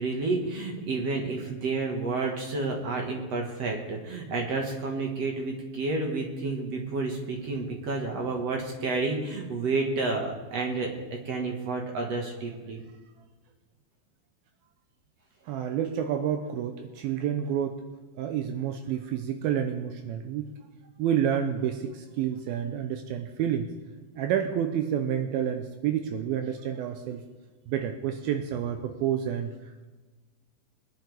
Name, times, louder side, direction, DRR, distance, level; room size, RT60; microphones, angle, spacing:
voice 1, 0.0-12.8, right 3 dB, 50° right, 1 dB, 2.3 m, -30 dB
voice 2, 15.5-17.8 18.2-20.5 21.0-23.7 24.2-27.2 27.7-29.5, right 9 dB, 80° right, 6 dB, 2.5 m, -29 dB
21.5 x 10.5 x 3.5 m, 1.3 s
omnidirectional pair, 4.4 m